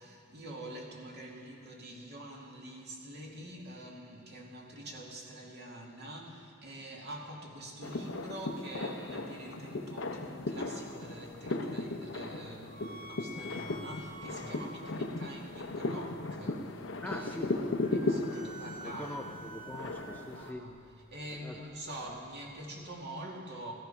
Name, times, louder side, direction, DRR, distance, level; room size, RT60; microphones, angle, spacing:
voice 1, 0.0-17.5 17.9-19.2 20.3-20.8 21.1-23.7, right 1 dB, 50° right, -1 dB, 2.3 m, -45 dB
sound 1, 7.8-20.5, left 2 dB, 55° left, 0.8 m, -37 dB
sound 2, 10.8-23.0, equal, 80° right, 2.7 m, -52 dB
voice 2, 17.0-18.0 18.3-18.5 18.8-20.7 21.4-21.6, left 1 dB, 5° left, 3 dB, 0.5 m, -43 dB
15.5 x 13.5 x 5.7 m, 2.5 s
head